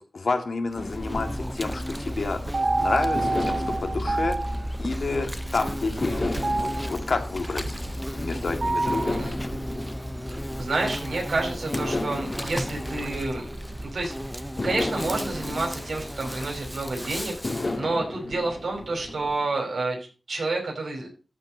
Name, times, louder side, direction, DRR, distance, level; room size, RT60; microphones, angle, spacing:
voice 1, 0.0-2.4 2.8-7.8 8.1-9.2, left 3 dB, 75° left, 5 dB, 2.0 m, -30 dB
Insect, 0.7-17.8, equal, 5° left, 0.6 m, -34 dB
sound 1, 0.8-2.6 3.2-5.4 6.0-8.3 8.9-11.1 11.7-14.0 14.6-16.8 17.4-19.7, left 2 dB, 50° left, 2.0 m, -35 dB
sound 2, 1.7-19.3, right 2 dB, 50° right, 0.7 m, -33 dB
voice 2, 10.3-13.5 13.8-20.0 20.3-21.1, right 3 dB, 75° right, 0 dB, 5.4 m, -29 dB
13.5 x 4.5 x 6.5 m, 0.35 s
cardioid pair, 45°, 0 cm